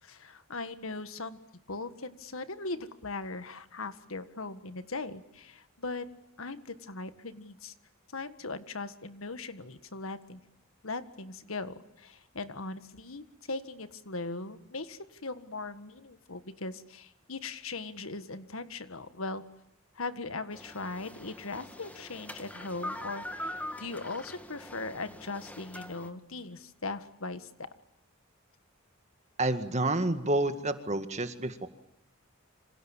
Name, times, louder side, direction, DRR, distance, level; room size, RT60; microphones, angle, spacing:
voice 1, 0.0-1.4 1.7-6.1 6.4-7.7 8.1-10.4 10.8-19.5 19.9-27.7, left 3 dB, 80° left, 11 dB, 1.7 m, -39 dB
sound 1, 20.5-26.1, left 1 dB, 5° left, 1.7 m, -43 dB
voice 2, 29.4-31.7, right 2 dB, 35° right, 9 dB, 2.0 m, -29 dB
28.0 x 26.5 x 7.3 m, 0.85 s
head